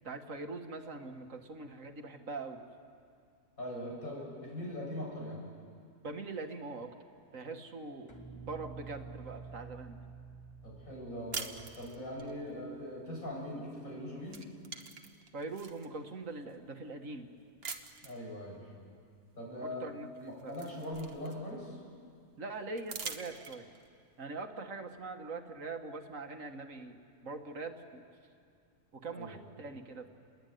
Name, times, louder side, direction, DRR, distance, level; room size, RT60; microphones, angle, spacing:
voice 1, 0.0-2.6 6.0-6.9 7.3-8.1 8.5-10.0 15.3-17.3 19.6-20.1 20.4-20.5 22.4-23.7 24.2-28.0 28.9-30.1, right 3 dB, 70° right, 5 dB, 2.0 m, -42 dB
voice 2, 3.6-5.4 10.6-11.5 11.8-14.4 18.0-18.6 19.4-19.9 20.2-21.8 29.1-29.4, left 1 dB, 85° left, -3 dB, 7.9 m, -41 dB
sound 1, 8.1-13.3, right 5 dB, 20° left, 2.5 m, -50 dB
sound 2, 11.3-12.3 13.7-13.9 14.2-15.9 16.5-16.6 17.6-18.2 19.7-19.8 20.1-21.7 22.8-23.9, right 4 dB, 45° right, 1.5 m, -44 dB
29.0 x 21.5 x 9.4 m, 2.3 s
omnidirectional pair, 1.4 m